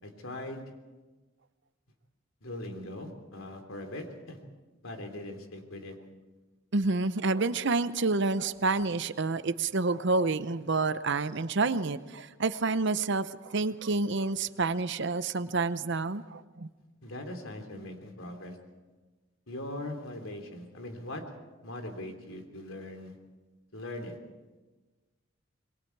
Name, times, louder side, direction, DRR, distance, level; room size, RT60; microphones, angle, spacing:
voice 1, 0.0-0.6 2.4-4.4 4.8-5.9 17.0-18.6 19.5-21.2 21.6-23.1 23.7-24.2, left 1 dB, 80° left, 4 dB, 3.2 m, -40 dB
voice 2, 6.7-16.7, right 3 dB, 60° right, 13 dB, 0.8 m, -29 dB
27.0 x 22.0 x 4.7 m, 1.2 s
head